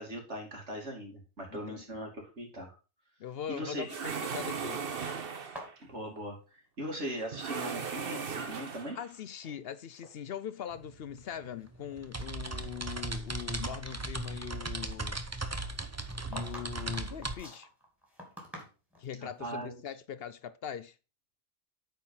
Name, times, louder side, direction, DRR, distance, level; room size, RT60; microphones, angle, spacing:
voice 1, 0.0-2.7 3.5-3.9 5.8-9.0 19.4-19.8, right 1 dB, 75° right, 3.1 m, -39 dB
voice 2, 3.2-4.9 9.0-15.2 16.3-17.7 19.0-21.0, left 9 dB, 65° left, 0.8 m, -41 dB
sound 1, 3.9-5.7 7.3-9.1, right 6 dB, 55° right, 1.1 m, -37 dB
sound 2, 5.3-7.3 7.6-8.4 9.0-9.6 9.9-10.1 10.8-10.9 11.4-12.9 13.3-13.4 15.7-19.1, equal, ahead, 2.7 m, -49 dB
sound 3, 10.7-10.8 11.1-17.4, right 2 dB, 20° right, 0.5 m, -37 dB
8.8 x 4.7 x 5.5 m
omnidirectional pair, 1.2 m